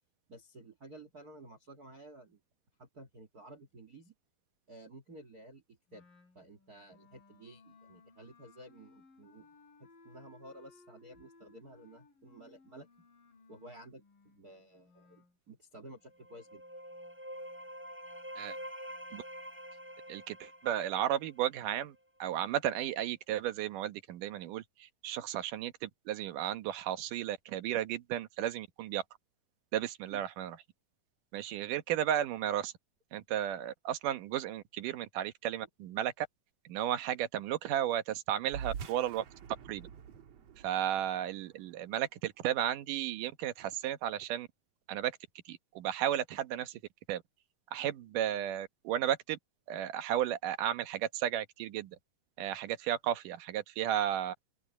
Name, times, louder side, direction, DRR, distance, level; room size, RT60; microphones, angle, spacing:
voice 1, 0.3-2.4 2.8-4.1 4.7-6.1 6.3-9.5 9.8-13.1 13.5-16.6 30.1-30.2, right 1 dB, 30° right, 2.0 m, -53 dB
Wind instrument woodwind instrument, 5.9-15.4, left 3 dB, 85° left, 8.0 m, -62 dB
sound 1, 16.1-21.8, equal, 5° right, 6.5 m, -47 dB
voice 2, 20.1-29.0 29.7-30.6 31.3-32.7 33.1-36.3 36.7-39.2 39.7-39.9 40.6-44.5 44.9-45.2 45.5-46.8 47.1-47.2 47.7-49.4 49.7-52.0 52.4-54.3, right 11 dB, 75° right, 2.6 m, -34 dB
sound 2, 38.5-43.3, right 7 dB, 55° right, 2.3 m, -47 dB
open air
omnidirectional pair, 3.9 m